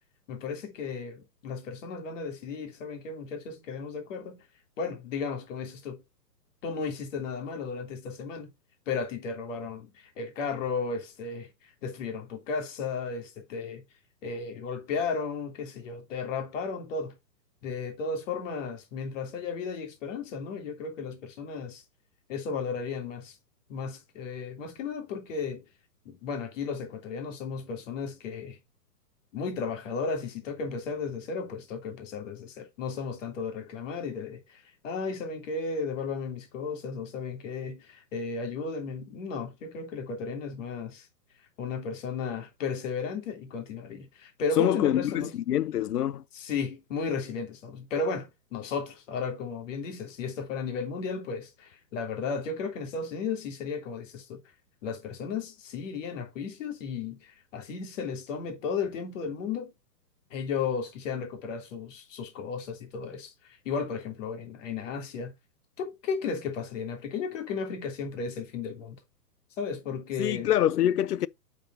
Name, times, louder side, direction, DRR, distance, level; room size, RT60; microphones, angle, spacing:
voice 1, 0.3-4.4 4.8-6.0 6.6-8.5 8.9-13.8 14.2-17.2 17.6-21.8 22.3-23.4 23.7-25.6 26.0-28.6 29.3-41.1 41.6-45.4 46.3-54.4 54.8-59.7 60.3-65.3 65.8-69.0 69.6-70.5, left 5 dB, 50° left, 3.2 m, -34 dB
voice 2, 44.6-46.2 70.2-71.3, left 11 dB, 65° left, 0.7 m, -25 dB
8.7 x 7.2 x 2.7 m
hypercardioid pair, 135°, 49 cm